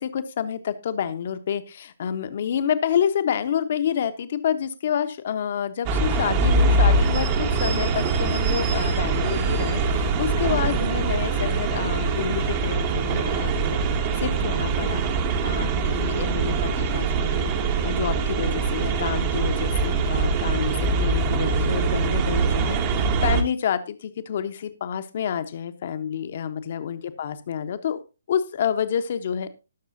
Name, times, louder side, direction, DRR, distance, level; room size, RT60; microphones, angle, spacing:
voice 1, 0.0-13.8 14.2-15.0 15.4-17.5 17.8-28.0 28.3-29.5, left 8 dB, 40° left, 1.1 m, -28 dB
sound 1, 5.9-23.4, right 4 dB, 25° right, 1.3 m, -23 dB
19.0 x 6.6 x 2.7 m
figure-of-eight pair, 135°, 0 cm